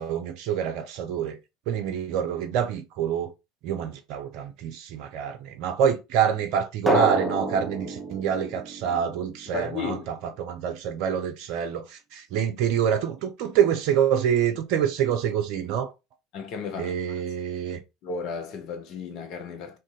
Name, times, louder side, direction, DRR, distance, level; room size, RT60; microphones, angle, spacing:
voice 1, 0.0-1.4 1.7-3.3 3.6-15.9 16.8-17.8, right 8 dB, 55° right, 0.5 m, -26 dB
Drum, 6.9-9.6, right 1 dB, 10° right, 0.8 m, -28 dB
voice 2, 9.5-10.1 16.3-16.9 18.0-19.8, left 4 dB, 50° left, 0.7 m, -33 dB
2.6 x 2.5 x 3.6 m
figure-of-eight pair, 70°, 0 cm